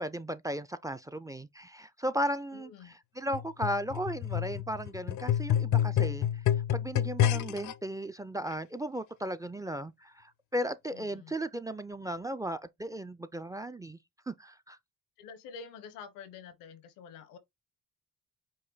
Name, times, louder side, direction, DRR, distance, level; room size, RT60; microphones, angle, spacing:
voice 1, 0.0-6.3 6.7-14.0 14.3-14.8, equal, 10° right, 0.4 m, -36 dB
voice 2, 2.5-2.9 10.9-11.3 15.2-17.4, left 6 dB, 85° left, 0.9 m, -48 dB
sound 1, 3.3-7.7 8.5-8.6, left 10 dB, 65° left, 0.6 m, -29 dB
5.3 x 2.2 x 3.9 m
supercardioid pair, 65°, 32 cm